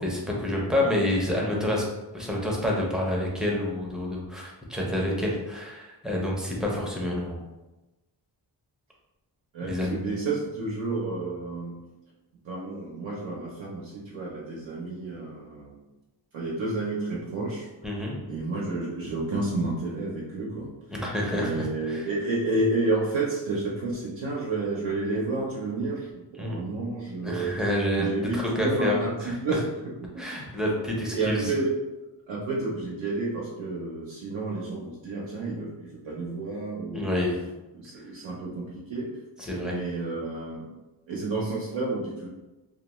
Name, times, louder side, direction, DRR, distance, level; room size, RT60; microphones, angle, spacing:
voice 1, 0.0-1.8 2.1-7.4 9.6-10.1 17.8-18.2 20.9-22.1 26.4-26.6 27.2-28.1 28.3-29.3 30.2-31.5 36.9-37.4 39.4-39.8, left 1 dB, ahead, -3 dB, 0.6 m, -28 dB
voice 2, 9.5-11.8 12.4-15.7 16.3-17.7 18.3-20.7 21.3-27.5 28.0-29.6 30.1-30.2 31.1-31.7 32.3-37.1 37.7-39.1 39.6-40.7 41.1-42.3, right 3 dB, 80° right, -5 dB, 0.7 m, -30 dB
2.3 x 2.2 x 3.0 m, 1.1 s
cardioid pair, 75°, 45 cm